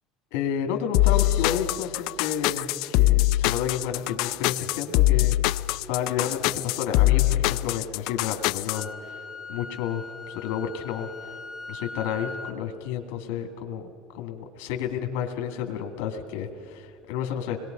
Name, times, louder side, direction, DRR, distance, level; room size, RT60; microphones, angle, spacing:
voice 1, 0.3-5.3 5.9-9.2 9.5-11.4 11.7-17.6, left 8 dB, 85° left, 4 dB, 2.4 m, -31 dB
sound 1, 0.9-8.8, left 18 dB, 65° left, 0.5 m, -23 dB
Wind instrument woodwind instrument, 8.7-12.6, left 3 dB, ahead, 2.4 m, -40 dB
27.0 x 21.0 x 5.3 m, 2.6 s
cardioid pair, 160°, 0 cm